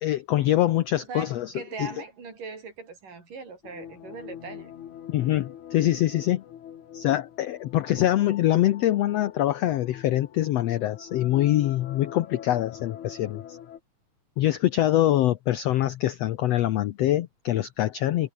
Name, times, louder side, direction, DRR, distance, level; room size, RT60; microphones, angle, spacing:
voice 1, 0.0-1.5 1.8-1.9 5.1-6.4 6.9-13.6 14.4-18.3, left 13 dB, 85° left, 1.4 m, -24 dB
voice 2, 1.1-4.7, right 4 dB, 65° right, 7.2 m, -40 dB
sound 1, 3.6-13.8, left 10 dB, 60° left, 3.0 m, -44 dB
omnidirectional pair, 4.0 m